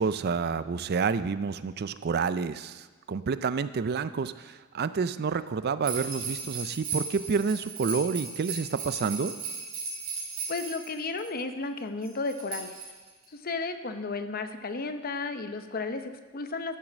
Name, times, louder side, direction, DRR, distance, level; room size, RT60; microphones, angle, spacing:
voice 1, 0.0-9.3, right 5 dB, 50° right, 14 dB, 0.4 m, -29 dB
sound 1, 5.8-11.3 12.0-13.2, right 4 dB, 90° right, 3.5 m, -36 dB
voice 2, 10.5-12.7 13.3-16.8, left 3 dB, 45° left, 9 dB, 0.8 m, -33 dB
13.0 x 7.3 x 6.2 m, 1.3 s
head